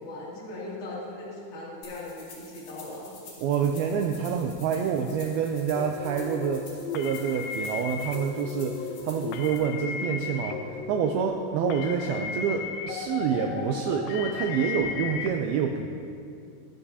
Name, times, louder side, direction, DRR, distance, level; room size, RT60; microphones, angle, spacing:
voice 1, 0.0-3.1, left 2 dB, 25° left, -7 dB, 1.9 m, -39 dB
sound 1, 1.8-9.6, left 4 dB, 70° left, 4.0 m, -49 dB
voice 2, 3.4-15.9, right 7 dB, 85° right, 3 dB, 2.2 m, -27 dB
sound 2, 5.8-15.3, left 6 dB, 85° left, 2.8 m, -35 dB
23.0 x 7.8 x 2.8 m, 2.5 s
omnidirectional pair, 4.9 m